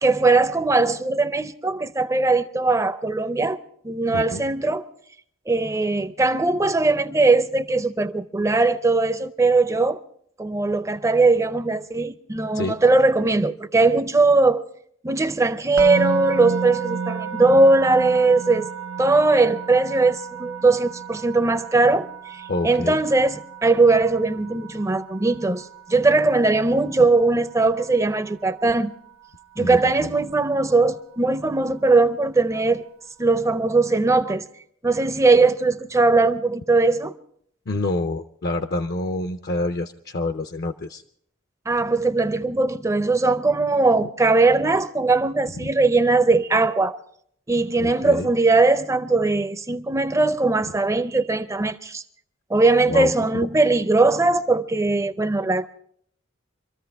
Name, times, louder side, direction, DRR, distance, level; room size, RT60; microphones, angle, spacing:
voice 1, 0.0-3.6 3.8-4.8 5.5-10.0 10.4-14.6 15.0-18.7 19.0-28.9 29.6-32.8 33.2-34.4 34.8-37.1 41.7-47.0 47.5-52.0 52.5-55.7, right 3 dB, 15° right, 0.5 m, -20 dB
voice 2, 4.1-4.4 12.5-12.8 22.5-23.0 29.6-30.1 37.7-41.0 44.0-44.1 47.8-48.3 52.9-53.5, left 2 dB, 50° left, 0.5 m, -27 dB
Musical instrument, 15.8-26.9, right 5 dB, 85° right, 0.7 m, -32 dB
25.5 x 14.0 x 3.4 m
head